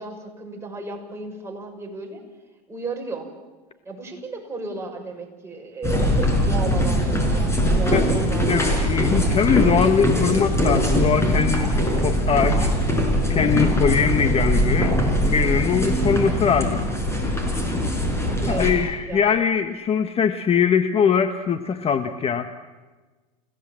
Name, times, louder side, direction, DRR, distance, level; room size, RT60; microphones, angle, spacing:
voice 1, 0.0-2.2 2.7-3.3 3.8-9.3 18.1-18.7 19.0-19.5, right 3 dB, 10° right, 0 dB, 6.2 m, -34 dB
sound 1, 5.8-18.7, equal, 10° left, 6.3 m, -21 dB
voice 2, 8.5-12.7 13.3-15.0 15.2-16.8 17.2-17.4 18.5-22.5, left 7 dB, 30° left, 9 dB, 1.2 m, -22 dB
29.5 x 17.0 x 7.6 m, 1.3 s
hypercardioid pair, 110°, 21 cm